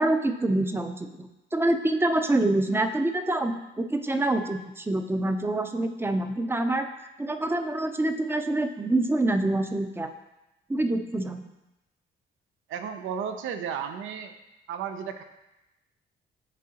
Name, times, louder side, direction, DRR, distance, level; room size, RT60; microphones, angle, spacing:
voice 1, 0.0-6.9 7.2-10.1 10.7-11.5, right 2 dB, 10° right, 7 dB, 0.5 m, -26 dB
voice 2, 12.7-14.3 14.7-15.2, right 7 dB, 80° right, 8 dB, 0.6 m, -33 dB
10.0 x 3.6 x 2.8 m, 0.97 s
cardioid pair, 90°, 20 cm